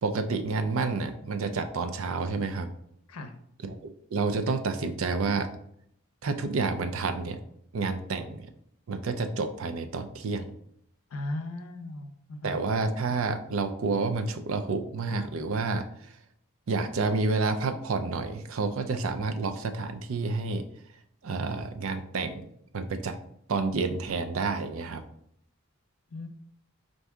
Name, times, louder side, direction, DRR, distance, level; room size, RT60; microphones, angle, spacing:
voice 1, 0.0-2.7 3.6-5.5 6.2-7.4 7.7-8.5 8.9-10.5 12.4-15.9 16.7-20.7 21.2-22.5 22.7-23.2 23.5-25.0, right 4 dB, 75° right, 8 dB, 0.5 m, -29 dB
voice 2, 11.1-12.6 26.1-26.3, left 2 dB, 85° left, 6 dB, 0.6 m, -37 dB
4.5 x 2.6 x 3.5 m, 0.70 s
head